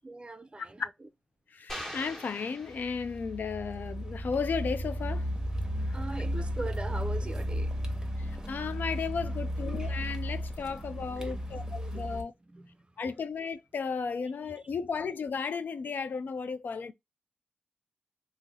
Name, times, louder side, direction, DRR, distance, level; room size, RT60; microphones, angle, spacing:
voice 1, 0.0-0.8 5.9-7.7 10.6-10.8 11.1-11.5 11.9-12.8, right 2 dB, 35° right, 0.4 m, -41 dB
voice 2, 1.5-5.3 8.5-12.3 13.0-16.9, left 5 dB, 75° left, 0.3 m, -34 dB
sound 1, 1.7-3.4, equal, 10° left, 1.0 m, -42 dB
Car, 2.8-12.2, equal, 20° right, 0.8 m, -34 dB
2.7 x 2.0 x 3.5 m
cardioid pair, 40°, 3 cm